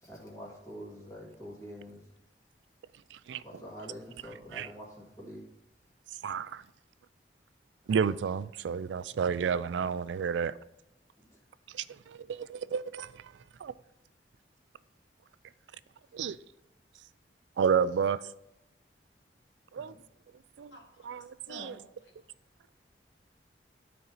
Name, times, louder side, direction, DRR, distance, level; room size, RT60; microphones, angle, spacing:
voice 1, 0.0-2.0 3.4-5.4 11.2-11.4 16.1-16.2 19.8-20.0, equal, 15° left, -4 dB, 2.2 m, -46 dB
voice 2, 3.1-3.4 4.5-4.7 6.2-6.6 7.9-10.5 11.7-13.2 13.6-13.7 16.1-16.4 17.6-18.2 19.7-19.9 20.6-20.7 21.1-21.7, right 6 dB, 80° right, 17 dB, 0.3 m, -31 dB
voice 3, 20.7-22.3, left 1 dB, 85° left, 1 dB, 1.9 m, -51 dB
12.5 x 4.3 x 4.0 m, 0.87 s
head